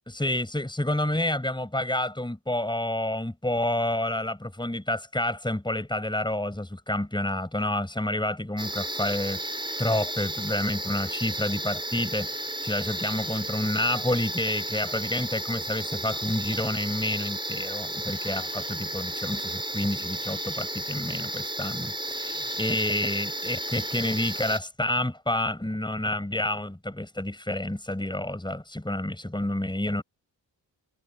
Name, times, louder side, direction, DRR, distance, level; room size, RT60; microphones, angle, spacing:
voice 1, 0.1-9.4 9.8-30.0, left 1 dB, 10° left, 7.2 m, -29 dB
sound 1, 8.6-24.6, right 1 dB, 10° right, 4.6 m, -33 dB
cardioid pair, 60°, 44 cm